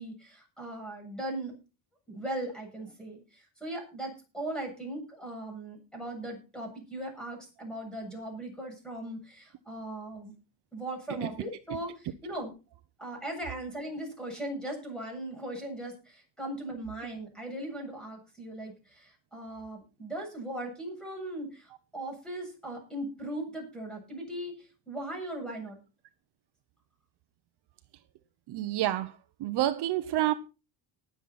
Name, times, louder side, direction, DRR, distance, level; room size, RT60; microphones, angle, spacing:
voice 1, 0.0-1.5 2.1-10.3 10.7-12.5 13.0-25.8, right 1 dB, ahead, 7.8 m, -39 dB
voice 2, 28.5-30.3, right 14 dB, 60° right, 1.1 m, -29 dB
20.0 x 7.6 x 4.3 m
cardioid pair, 140°, 46 cm